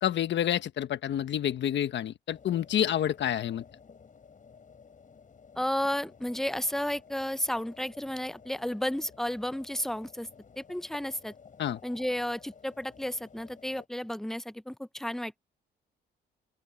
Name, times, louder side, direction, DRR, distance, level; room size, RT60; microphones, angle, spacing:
voice 1, 0.0-3.6 11.6-11.8, left 10 dB, 65° left, 1.3 m, -28 dB
sound 1, 2.3-13.9, left 6 dB, 40° left, 7.3 m, -54 dB
voice 2, 5.6-10.3 10.6-11.3 11.8-15.4, left 1 dB, ahead, 0.6 m, -32 dB
open air
cardioid pair, 90°, 20 cm